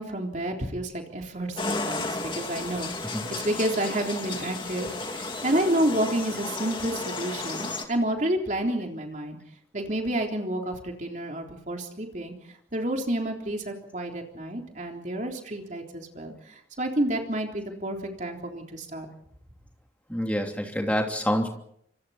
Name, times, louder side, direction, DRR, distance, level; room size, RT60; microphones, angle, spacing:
voice 1, 0.0-9.4 9.7-12.3 12.7-19.1, right 1 dB, 40° right, 2 dB, 3.6 m, -30 dB
sound 1, 1.6-7.9, left 3 dB, 25° left, 2.4 m, -33 dB
voice 2, 20.1-21.6, equal, 10° left, 2 dB, 3.0 m, -27 dB
28.5 x 26.0 x 4.3 m, 0.69 s
head